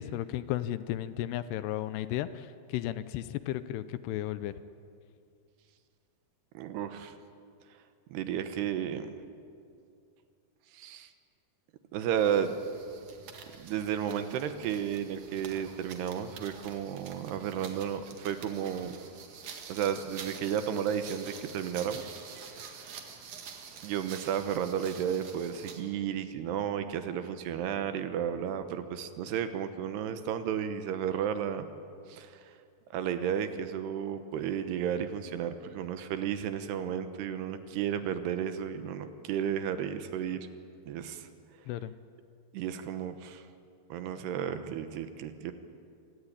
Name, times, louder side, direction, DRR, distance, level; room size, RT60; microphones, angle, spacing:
voice 1, 0.0-4.5 41.7-41.9, left 13 dB, 80° left, 13 dB, 2.6 m, -34 dB
voice 2, 6.5-7.1 7.7-7.8 8.1-9.1 10.7-11.1 11.9-12.6 13.6-19.0 19.7-22.2 22.5-23.0 23.8-31.7 32.1-32.6 32.9-40.5 40.9-41.3 42.5-43.5 43.9-45.5, right 9 dB, 75° right, 9 dB, 3.0 m, -33 dB
sound 1, 12.2-25.9, right 6 dB, 55° right, 2.7 m, -47 dB
26.0 x 17.5 x 9.9 m, 2.4 s
omnidirectional pair, 5.1 m